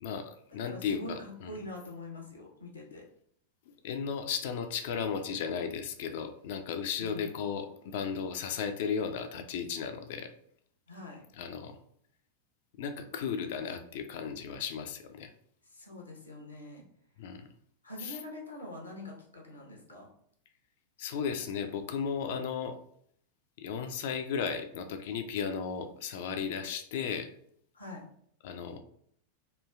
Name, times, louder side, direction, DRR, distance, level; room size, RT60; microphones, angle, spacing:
voice 1, 0.0-1.5 3.7-10.3 11.4-11.8 12.8-15.3 17.2-17.5 18.0-18.2 21.0-22.8 23.6-27.3 28.4-28.8, left 6 dB, 55° left, 7 dB, 0.3 m, -35 dB
voice 2, 0.6-3.0 7.0-7.3 10.9-11.2 15.6-16.8 17.8-20.1 27.7-28.1, left 1 dB, 80° left, -1 dB, 0.7 m, -44 dB
3.1 x 2.3 x 2.3 m, 0.67 s
figure-of-eight pair, 90°, 0 cm